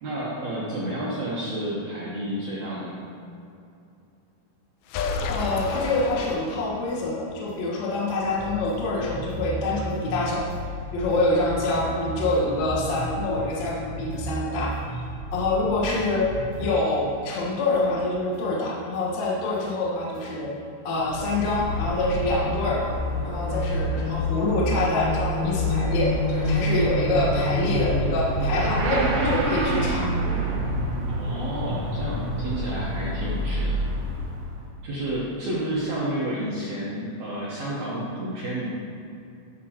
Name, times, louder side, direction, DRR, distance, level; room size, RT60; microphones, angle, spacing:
voice 1, 0.0-3.1 31.1-33.8 34.8-38.7, right 1 dB, 80° right, -7 dB, 1.6 m, -30 dB
sound 1, 4.9-7.0, left 4 dB, 85° left, 2.8 m, -30 dB
voice 2, 5.3-10.5 10.9-15.0 15.3-20.5 20.8-22.8 23.2-30.1, left 2 dB, 60° left, -5 dB, 2.0 m, -26 dB
sound 2, 5.7-17.4 17.7-20.5, right 1 dB, 25° left, 1.2 m, -37 dB
Motorcycle / Accelerating revving vroom, 21.0-34.8, equal, 60° right, 1.8 m, -26 dB
14.5 x 6.2 x 2.9 m, 2.6 s
omnidirectional pair, 5.0 m